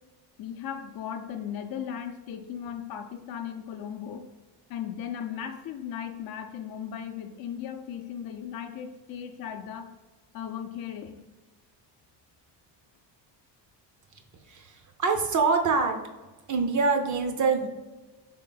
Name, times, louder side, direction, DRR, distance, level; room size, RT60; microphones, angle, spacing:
voice 1, 0.4-4.3 4.7-9.9 10.3-11.2, left 8 dB, 50° left, 5 dB, 0.5 m, -37 dB
voice 2, 14.5-16.0 16.5-17.7, right 4 dB, 40° right, 5 dB, 0.7 m, -25 dB
3.8 x 3.3 x 3.9 m, 1.2 s
cardioid pair, 115°, 45 cm